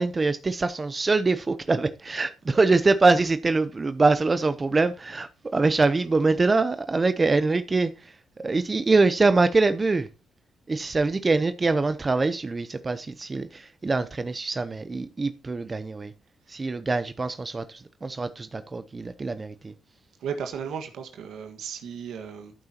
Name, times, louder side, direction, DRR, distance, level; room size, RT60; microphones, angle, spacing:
voice 1, 0.0-10.1 10.7-16.1 16.5-19.7, right 3 dB, 30° right, 0.7 m, -24 dB
voice 2, 20.2-22.5, right 7 dB, 80° right, 1.5 m, -35 dB
14.0 x 7.8 x 2.9 m
cardioid pair, 90°, 0 cm